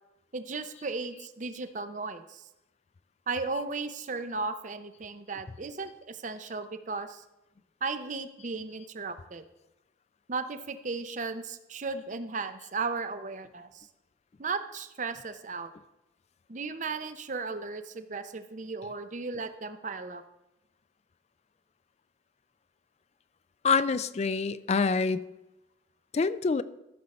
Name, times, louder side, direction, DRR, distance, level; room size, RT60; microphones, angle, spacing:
voice 1, 0.3-2.4 3.3-7.2 7.8-9.4 10.3-13.9 14.4-15.7 16.5-20.2, right 4 dB, 45° right, 10 dB, 0.6 m, -35 dB
voice 2, 23.6-25.2 26.1-26.6, left 4 dB, 35° left, 15 dB, 0.4 m, -26 dB
14.5 x 6.6 x 4.2 m, 0.95 s
head